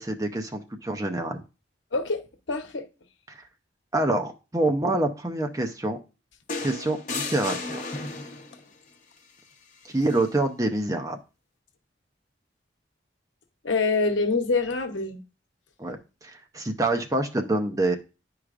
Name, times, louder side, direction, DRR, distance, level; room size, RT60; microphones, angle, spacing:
voice 1, 0.0-1.4 3.3-3.4 3.9-6.0 6.6-7.8 9.8-11.2 15.8-18.0, right 2 dB, 20° right, 0.6 m, -26 dB
voice 2, 1.9-2.9 13.6-15.2, left 3 dB, 80° left, 0.9 m, -25 dB
sound 1, 6.5-8.6 10.0-10.3, left 3 dB, 45° left, 0.9 m, -34 dB
10.0 x 4.7 x 2.5 m
head